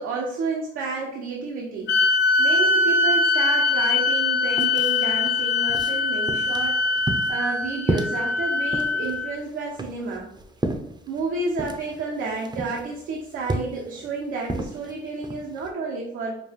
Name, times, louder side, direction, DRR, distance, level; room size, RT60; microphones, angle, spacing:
voice 1, 0.0-1.9 2.4-6.8 7.3-10.3 11.1-16.4, right 3 dB, 85° right, -2 dB, 0.8 m, -30 dB
sound 1, 1.9-9.4, left 3 dB, 65° left, 0.7 m, -22 dB
sound 2, 3.8-3.9 4.2-15.7, right 2 dB, 20° right, 0.5 m, -33 dB
5.1 x 2.3 x 3.3 m, 0.75 s
cardioid pair, 90°, 20 cm